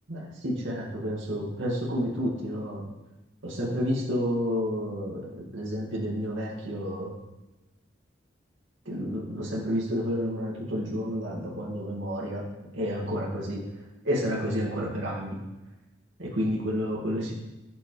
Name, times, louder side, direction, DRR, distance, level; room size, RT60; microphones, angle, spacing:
voice 1, 0.1-2.8 3.4-7.1 8.9-12.4 12.7-13.6 14.0-15.4 16.2-17.4, equal, 90° right, -4 dB, 2.2 m, -30 dB
11.5 x 8.5 x 3.3 m, 1.0 s
head